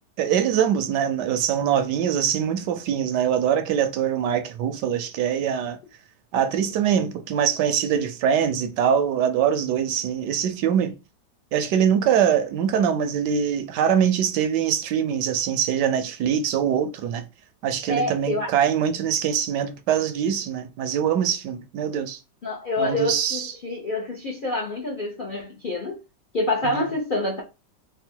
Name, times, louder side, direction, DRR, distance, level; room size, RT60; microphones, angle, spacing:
voice 1, 0.2-5.8 6.3-11.0 11.5-17.2 17.6-22.2 22.8-23.5 26.6-26.9, right 8 dB, 75° right, 1.1 m, -23 dB
voice 2, 17.9-18.5 22.4-26.0 26.3-27.4, left 2 dB, 50° left, 0.6 m, -27 dB
3.6 x 2.2 x 4.3 m
omnidirectional pair, 1.9 m